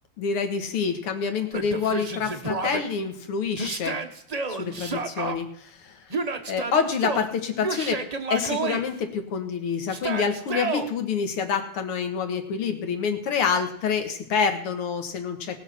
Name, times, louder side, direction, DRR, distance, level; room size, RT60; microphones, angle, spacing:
voice 1, 0.2-4.0 4.5-6.0 6.5-8.0 8.3-15.6, left 6 dB, 85° left, 6 dB, 2.5 m, -27 dB
Yell, 1.5-2.8 3.6-5.4 6.1-7.3 7.6-8.8 9.9-10.9, right 4 dB, 80° right, 0.3 m, -30 dB
19.0 x 6.6 x 5.9 m, 0.74 s
omnidirectional pair, 2.4 m